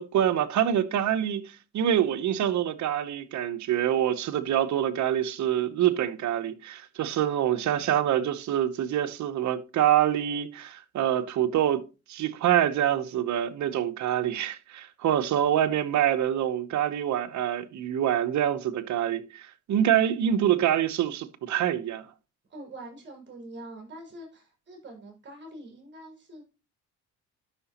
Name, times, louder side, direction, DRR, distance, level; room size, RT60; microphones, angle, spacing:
voice 1, 0.0-11.8 12.1-22.1, right 10 dB, 70° right, 0.9 m, -26 dB
voice 2, 22.5-26.4, right 1 dB, 35° right, 5.9 m, -44 dB
12.5 x 5.8 x 2.9 m
cardioid pair, 90°, 30 cm